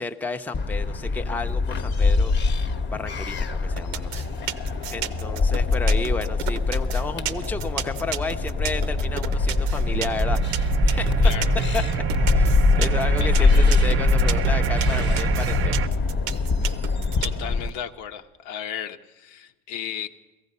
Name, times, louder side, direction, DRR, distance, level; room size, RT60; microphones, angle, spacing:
voice 1, 0.0-2.3 2.9-4.3 4.9-11.3 11.7-11.8 12.2-15.8, left 3 dB, 5° left, 7 dB, 0.5 m, -32 dB
sound 1, 0.5-17.7, left 4 dB, 35° left, 0.9 m, -23 dB
sound 2, 3.8-17.4, right 12 dB, 90° right, 0.7 m, -32 dB
sound 3, 7.5-15.9, right 8 dB, 45° right, 0.5 m, -27 dB
voice 2, 11.2-11.5 13.2-13.6 17.2-20.1, left 9 dB, 75° left, 9 dB, 0.9 m, -34 dB
17.0 x 15.0 x 5.4 m, 1.1 s
cardioid pair, 115°, 30 cm